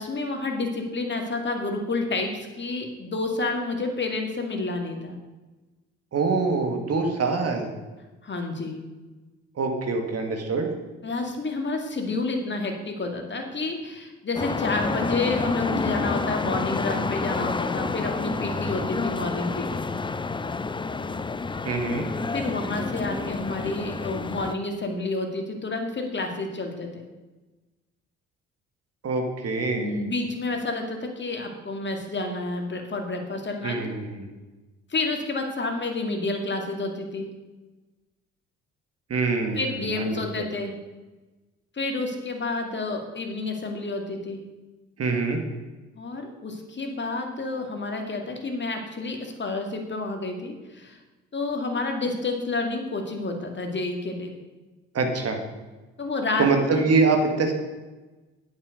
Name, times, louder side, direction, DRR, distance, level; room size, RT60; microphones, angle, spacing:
voice 1, 0.0-5.2 8.2-8.8 11.0-19.9 22.3-27.0 29.8-33.8 34.9-37.3 39.6-40.8 41.7-44.4 45.9-51.0 51.3-54.3 56.0-56.5, left 3 dB, 30° left, 3 dB, 2.3 m, -29 dB
voice 2, 6.1-7.7 9.6-10.7 21.7-22.1 29.0-30.0 33.6-34.3 39.1-40.5 45.0-45.4 54.9-55.4 56.4-57.5, right 4 dB, 45° right, 4 dB, 2.2 m, -24 dB
sound 1, 14.4-24.5, left 4 dB, 15° left, 0.6 m, -29 dB
8.8 x 7.6 x 6.7 m, 1.2 s
hypercardioid pair, 50°, 35 cm